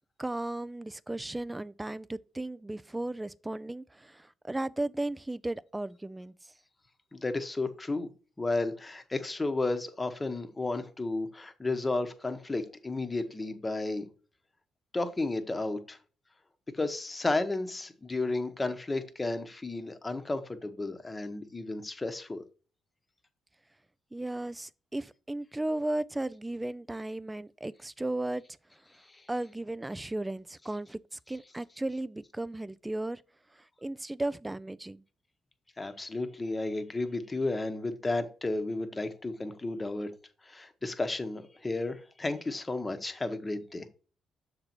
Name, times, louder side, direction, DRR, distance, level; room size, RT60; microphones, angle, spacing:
voice 1, 0.2-6.3 24.1-28.4 29.3-33.2 33.8-35.0, right 1 dB, 10° right, 0.3 m, -35 dB
voice 2, 7.1-8.1 8.4-14.0 14.9-16.0 16.8-22.4 29.1-29.2 35.8-40.1 40.5-43.8, left 2 dB, 20° left, 1.0 m, -33 dB
6.7 x 4.0 x 4.4 m
cardioid pair, 90°, 0 cm